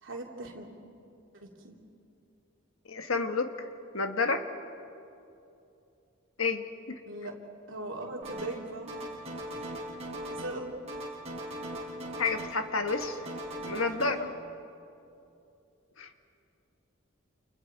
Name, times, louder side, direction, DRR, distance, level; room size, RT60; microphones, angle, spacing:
voice 1, 0.0-0.7 1.3-1.8 7.0-7.3 7.7-8.9 9.5-9.7 10.3-10.6, right 2 dB, 60° right, -1 dB, 3.2 m, -39 dB
voice 2, 2.8-3.7 3.9-4.4 6.4-7.0 12.2-13.2 13.6-14.3 16.0-16.1, left 4 dB, 75° left, 7 dB, 1.5 m, -30 dB
sound 1, 8.2-8.6 8.9-10.6 10.9-12.6 12.9-14.1, right 1 dB, 30° right, 4.8 m, -39 dB
29.5 x 29.5 x 4.7 m, 2.7 s
head